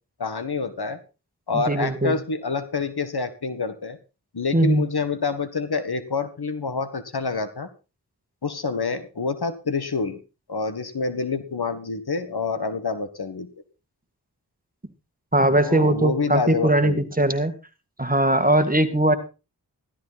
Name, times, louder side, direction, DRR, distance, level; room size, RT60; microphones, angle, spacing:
voice 1, 0.2-1.0 1.5-4.0 4.3-7.7 8.4-10.2 10.5-13.5 15.6-17.0, left 4 dB, 75° left, 11 dB, 1.8 m, -27 dB
voice 2, 1.5-2.2 4.5-4.8 15.3-17.5 18.0-19.2, right 1 dB, 20° right, 9 dB, 2.1 m, -20 dB
15.0 x 13.0 x 4.2 m, 0.32 s
cardioid pair, 40°, 39 cm